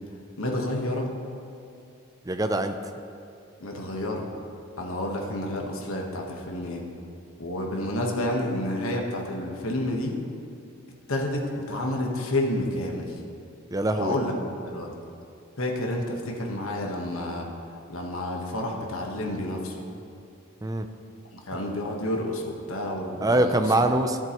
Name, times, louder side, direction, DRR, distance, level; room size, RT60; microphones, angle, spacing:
voice 1, 0.4-1.1 3.6-4.3 4.8-6.8 7.4-10.2 11.1-13.2 13.9-14.3 14.7-14.9 15.6-17.5 17.9-19.7 21.3-23.6, left 1 dB, 80° left, 0 dB, 1.3 m, -29 dB
voice 2, 2.3-2.7 13.7-14.2 20.6-20.9 23.2-24.2, right 1 dB, 15° right, 8 dB, 0.4 m, -23 dB
14.5 x 7.6 x 3.0 m, 2.5 s
head